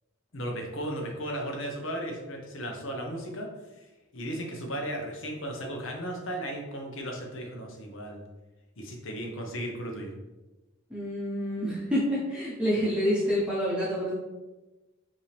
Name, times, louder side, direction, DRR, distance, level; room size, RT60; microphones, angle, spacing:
voice 1, 0.3-3.5 4.1-8.2 8.8-10.1, equal, 80° left, 1 dB, 0.9 m, -35 dB
voice 2, 10.9-14.1, equal, 5° right, -8 dB, 0.8 m, -28 dB
5.3 x 2.9 x 3.3 m, 1.1 s
head